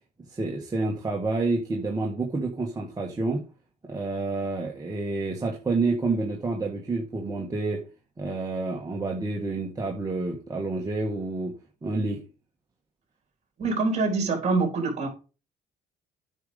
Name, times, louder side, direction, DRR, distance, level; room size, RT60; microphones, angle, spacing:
voice 1, 0.3-3.4 3.9-7.8 8.2-11.5 11.8-12.2, right 3 dB, 20° right, 1.6 m, -28 dB
voice 2, 13.6-15.1, right 3 dB, 40° right, 3.9 m, -25 dB
9.3 x 5.2 x 5.1 m
cardioid pair, 110°, 17 cm